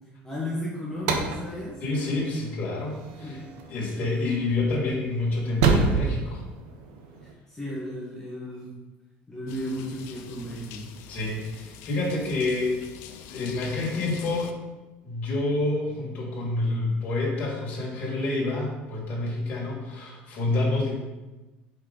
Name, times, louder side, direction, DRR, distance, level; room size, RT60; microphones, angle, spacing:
voice 1, 0.2-1.8 3.2-3.4 7.5-8.7 9.3-10.8, left 1 dB, 10° left, -6 dB, 1.2 m, -34 dB
sound 1, 0.9-7.3, right 4 dB, 90° right, 0.8 m, -29 dB
voice 2, 1.8-3.4 3.7-6.4 11.1-12.7 13.3-14.6 15.0-20.9, left 2 dB, 40° left, -3 dB, 1.9 m, -28 dB
sound 2, 9.5-14.5, left 7 dB, 70° left, 0.5 m, -44 dB
5.3 x 3.8 x 5.2 m, 1.1 s
cardioid pair, 155°, 4 cm